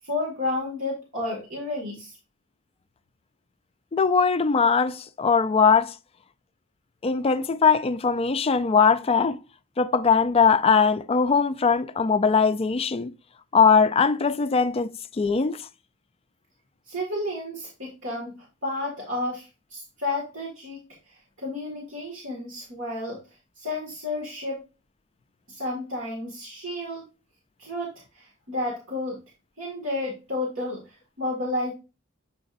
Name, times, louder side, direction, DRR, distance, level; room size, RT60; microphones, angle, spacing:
voice 1, 0.0-2.2 16.9-18.3 18.6-20.8 21.1-23.2 23.6-24.6 25.5-27.0 27.6-29.2 29.6-31.7, left 2 dB, 65° right, 2.0 m, -31 dB
voice 2, 3.9-5.9 7.0-9.4 9.8-13.1 13.5-15.6, left 5 dB, 30° left, 0.4 m, -21 dB
7.6 x 4.9 x 2.6 m
head